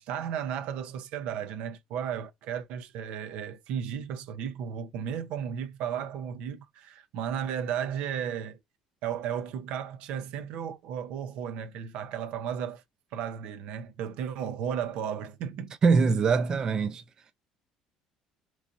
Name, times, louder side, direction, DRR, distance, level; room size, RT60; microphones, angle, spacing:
voice 1, 0.0-8.6 9.0-12.8 13.1-15.7, right 8 dB, 75° right, 0.6 m, -34 dB
voice 2, 15.8-17.0, right 5 dB, 35° right, 0.4 m, -23 dB
3.1 x 2.6 x 3.8 m
cardioid pair, 110°, 2 cm